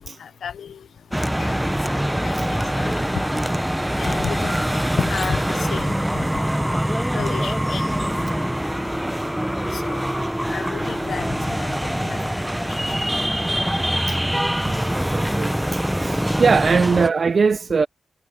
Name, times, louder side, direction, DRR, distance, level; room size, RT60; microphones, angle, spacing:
voice 1, 0.2-0.9 1.4-1.5 1.9-2.4 2.8-3.0 4.0-4.6 5.0-5.9 6.3-6.5 7.1-7.9 9.7-10.0 10.5-12.2 12.7-12.9, left 7 dB, 70° left, 0.6 m, -32 dB
sound 1, 1.1-17.1, equal, 5° right, 0.7 m, -24 dB
voice 2, 15.1-17.9, right 5 dB, 45° right, 0.5 m, -21 dB
wide cardioid pair, 125°, 0 cm